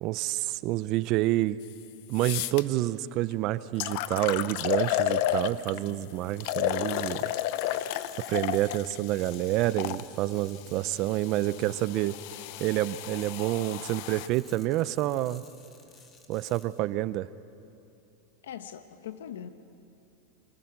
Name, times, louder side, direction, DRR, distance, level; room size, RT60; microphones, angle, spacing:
voice 1, 0.0-1.6 2.1-7.2 8.3-12.1 12.6-15.4 16.3-17.3, right 16 dB, 45° right, 16 dB, 0.6 m, -28 dB
sound 1, 1.6-1.7 2.1-2.6 3.3-3.4 3.8-5.9 6.4-10.0 10.8-14.3, left 13 dB, 60° left, 0.8 m, -32 dB
voice 2, 5.9-6.4 18.4-19.5, left 9 dB, 90° left, 10 dB, 1.1 m, -42 dB
sound 2, 6.5-16.8, left 4 dB, 25° left, 2.5 m, -56 dB
25.5 x 25.5 x 6.0 m, 2.6 s
supercardioid pair, 135°, 0 cm